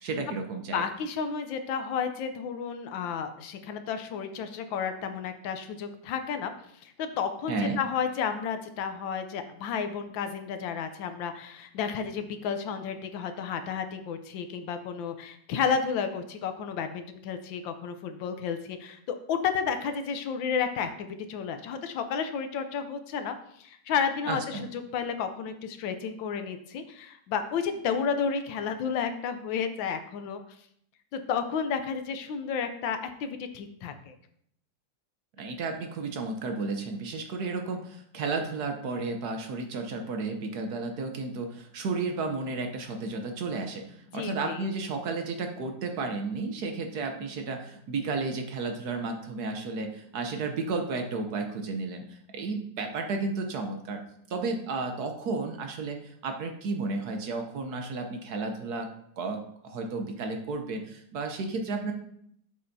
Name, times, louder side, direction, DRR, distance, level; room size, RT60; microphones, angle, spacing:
voice 1, 0.0-0.8 7.5-7.8 24.3-24.7 35.4-54.0 54.3-58.9 59.2-61.9, right 3 dB, 65° right, 5 dB, 1.2 m, -33 dB
voice 2, 0.7-6.5 6.8-30.4 31.1-34.1 44.1-44.7, left 6 dB, 85° left, 8 dB, 1.5 m, -32 dB
7.7 x 6.7 x 2.7 m, 0.69 s
omnidirectional pair, 2.0 m